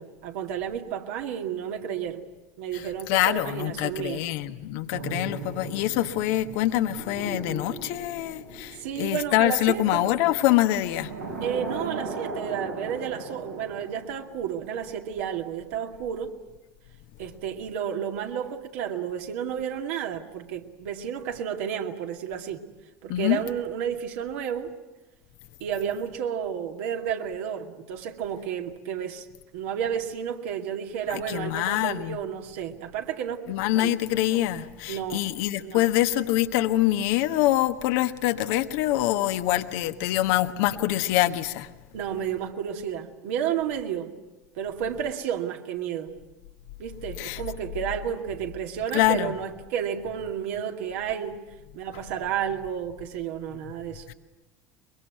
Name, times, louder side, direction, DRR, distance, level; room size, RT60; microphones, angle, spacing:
voice 1, 0.0-2.2 2.6-4.3 8.8-10.2 11.4-16.3 17.2-22.6 23.0-24.7 25.6-29.3 29.5-33.5 33.8-33.9 34.9-35.3 35.6-35.9 41.9-44.1 44.6-46.1 46.8-51.4 51.7-54.1, right 8 dB, 60° right, 4 dB, 2.2 m, -31 dB
voice 2, 3.1-11.1 23.1-23.4 31.1-32.2 33.5-41.7 47.2-47.4 48.9-49.3 54.1-54.2, left 14 dB, 55° left, 9 dB, 1.3 m, -25 dB
sound 1, 4.9-10.0 10.9-14.8 15.1-15.3, right 3 dB, 80° right, 6.2 m, -37 dB
23.5 x 23.0 x 9.3 m, 1.1 s
figure-of-eight pair, 70°, 9 cm